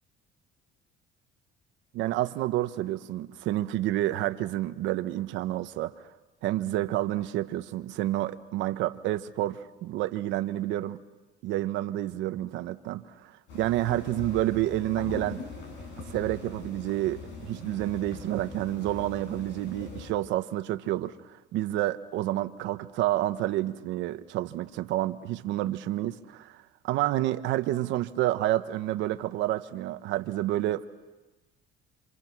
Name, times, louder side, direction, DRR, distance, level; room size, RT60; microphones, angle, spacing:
voice 1, 1.9-5.9 6.4-11.0 11.4-15.4 16.1-21.1 21.5-26.6 26.8-30.9, right 15 dB, 80° right, 1.0 m, -29 dB
sound 1, 13.5-20.1, left 4 dB, 75° left, 6.0 m, -42 dB
27.5 x 27.0 x 6.1 m
cardioid pair, 145°, 19 cm